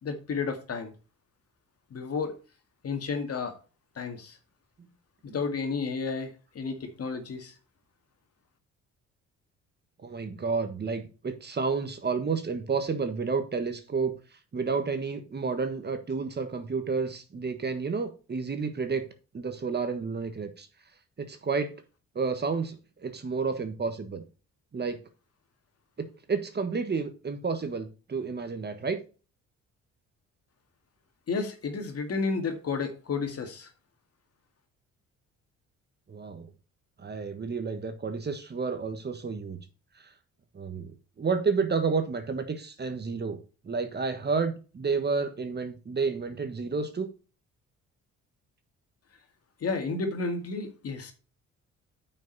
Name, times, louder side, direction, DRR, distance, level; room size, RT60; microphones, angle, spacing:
voice 1, 0.0-0.9 1.9-2.4 2.8-3.5 4.0-4.4 5.2-7.5 31.3-33.7 49.6-51.1, left 4 dB, 50° left, 5 dB, 2.2 m, -32 dB
voice 2, 10.0-14.1 14.5-19.1 19.3-20.7 21.2-21.7 22.1-24.2 24.7-25.0 26.0-29.0 36.1-36.5 37.0-39.6 40.5-40.9 41.2-43.4 43.6-47.1, right 4 dB, 35° right, 9 dB, 1.4 m, -30 dB
8.9 x 5.8 x 4.1 m, 0.34 s
cardioid pair, 90°, 30 cm